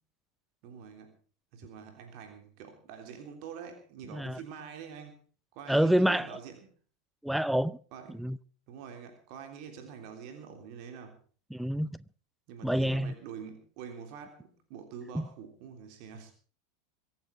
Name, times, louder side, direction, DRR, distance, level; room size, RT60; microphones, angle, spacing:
voice 1, 0.6-1.1 1.5-5.2 5.5-6.7 7.9-8.2 8.7-11.2 12.5-16.3, right 7 dB, 50° right, 3.4 m, -46 dB
voice 2, 5.7-6.3 7.2-7.8 8.1-8.4 11.5-12.0 12.6-13.1 15.1-15.3, equal, ahead, 0.7 m, -27 dB
24.0 x 9.1 x 5.8 m
figure-of-eight pair, 85°, 0 cm